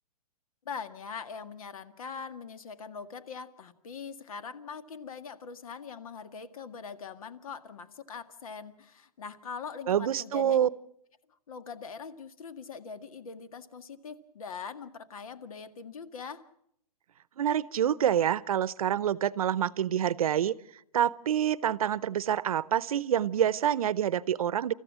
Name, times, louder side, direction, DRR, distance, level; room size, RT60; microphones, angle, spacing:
voice 1, 0.7-10.6 11.5-16.4, left 5 dB, 65° left, 11 dB, 1.9 m, -42 dB
voice 2, 9.9-10.7 17.4-20.5 20.9-24.7, right 10 dB, 70° right, 19 dB, 0.8 m, -27 dB
28.5 x 14.5 x 7.5 m, 0.75 s
hypercardioid pair, 160°, 19 cm